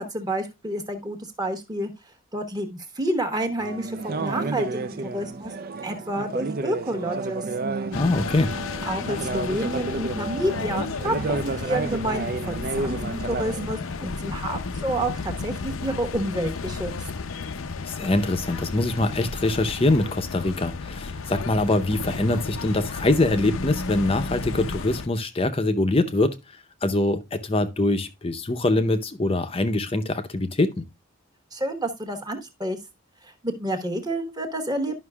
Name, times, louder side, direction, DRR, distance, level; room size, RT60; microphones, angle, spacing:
voice 1, 0.0-1.9 2.3-5.5 5.8-7.4 8.8-16.9 31.5-32.8 33.2-35.0, right 1 dB, 20° right, 1.2 m, -29 dB
sound 1, 3.6-13.7, right 3 dB, 45° right, 0.4 m, -31 dB
sound 2, 7.9-25.1, left 4 dB, 80° left, 0.6 m, -33 dB
voice 2, 7.9-8.5 17.9-26.4 26.8-30.8, left 2 dB, 25° left, 0.6 m, -23 dB
11.5 x 5.8 x 2.3 m
head